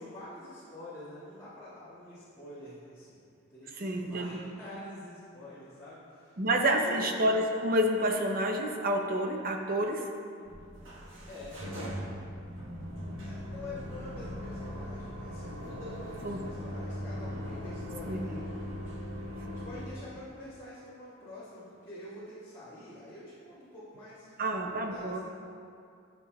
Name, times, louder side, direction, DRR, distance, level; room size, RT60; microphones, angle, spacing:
voice 1, 0.0-6.4 6.7-7.0 11.3-11.6 11.9-12.0 13.2-18.6 19.0-19.1 19.5-24.3 24.7-25.2, left 1 dB, 15° left, -15 dB, 1.8 m, -47 dB
voice 2, 3.8-4.4 6.4-10.1 16.2-16.4 18.1-18.4 24.4-25.2, right 1 dB, 45° right, 3 dB, 0.6 m, -29 dB
sound 1, 10.5-19.9, equal, 70° right, 1.3 m, -39 dB
11.0 x 6.9 x 2.3 m, 2.4 s
head